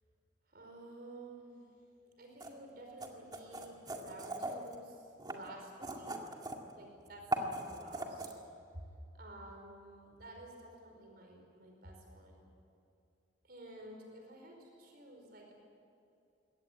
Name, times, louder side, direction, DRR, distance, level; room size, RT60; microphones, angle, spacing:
voice 1, 0.5-1.7 2.2-6.2 6.7-8.3 8.7-8.8 9.1-12.4 13.4-15.5, right 1 dB, 55° right, 2 dB, 4.9 m, -52 dB
sound 1, 2.4-2.5 3.0-4.7 5.2-6.7 7.1-8.3, right 2 dB, 25° right, 2.1 m, -39 dB
22.5 x 18.0 x 9.9 m, 2.5 s
head